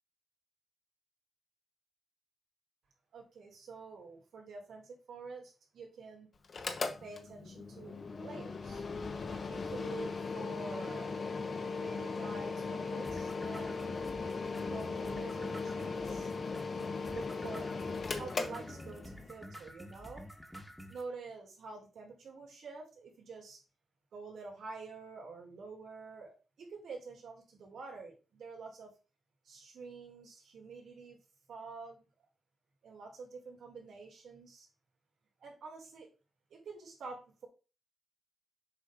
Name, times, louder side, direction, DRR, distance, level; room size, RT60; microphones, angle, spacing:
voice 1, 3.1-6.3 7.0-8.8 9.5-11.2 11.8-13.9 14.6-16.3 17.1-17.7 18.0-20.2 20.9-23.6 24.1-28.9 29.4-31.2 31.5-32.0 32.8-34.7 35.4-36.1 36.5-37.5, right 4 dB, 85° right, 0 dB, 2.9 m, -48 dB
Mechanical fan, 6.4-19.3, left 4 dB, 50° left, 1.0 m, -38 dB
sound 1, 13.0-21.0, equal, 5° left, 1.5 m, -50 dB
7.1 x 3.7 x 5.1 m, 0.32 s
cardioid pair, 95°, 0 cm